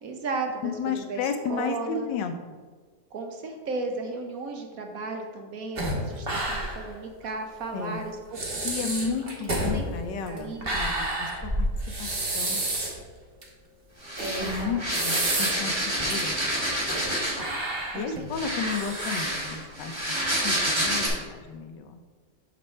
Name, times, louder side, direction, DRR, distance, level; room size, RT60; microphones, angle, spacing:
voice 1, 0.0-1.2 1.5-2.1 3.1-9.1 9.7-9.8 10.3-10.7 14.2-14.8 17.9-18.2, right 3 dB, 60° right, 4 dB, 1.0 m, -35 dB
voice 2, 0.6-2.6 7.7-8.0 8.6-11.7 12.0-12.1 12.3-12.6 14.4-16.3 17.9-20.1 20.4-22.0, left 5 dB, 85° left, 7 dB, 1.4 m, -33 dB
sound 1, 5.8-6.9 7.2-7.3 8.0-8.1 8.3-13.0 13.4-13.5 14.2-15.7 16.1-16.2 16.7-17.1 17.4-19.5, right 1 dB, 35° right, 1.3 m, -30 dB
sound 2, 14.0-17.5 18.3-21.1, right 1 dB, 15° right, 1.3 m, -28 dB
6.1 x 5.4 x 4.3 m, 1.5 s
omnidirectional pair, 1.9 m